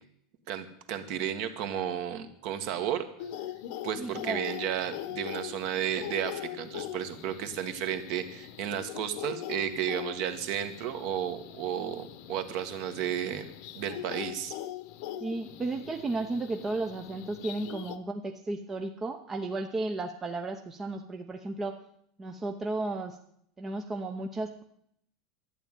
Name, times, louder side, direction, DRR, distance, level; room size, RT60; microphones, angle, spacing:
voice 1, 0.5-3.0 3.8-13.5 13.7-14.6, right 9 dB, 45° right, 9 dB, 1.6 m, -33 dB
sound 1, 3.2-18.0, left 12 dB, 50° left, 1.0 m, -42 dB
voice 2, 4.0-4.5 15.2-21.7 22.2-23.2 23.6-24.6, right 2 dB, 15° right, 4 dB, 0.8 m, -34 dB
12.0 x 9.9 x 9.0 m, 0.70 s
supercardioid pair, 170°, 2 cm